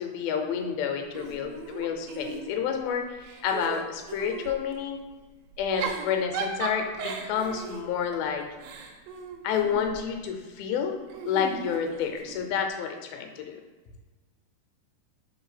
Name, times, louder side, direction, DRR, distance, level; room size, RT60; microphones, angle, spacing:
voice 1, 0.0-5.0 5.6-8.4 9.4-11.0 11.3-13.6, left 7 dB, 85° left, 4 dB, 2.6 m, -29 dB
Giggle / Chuckle chortle, 1.1-2.8 3.2-4.6 5.5-10.0 11.1-12.5, right 5 dB, 85° right, 2.5 m, -37 dB
5.1 x 3.9 x 5.7 m, 1.3 s
omnidirectional pair, 4.3 m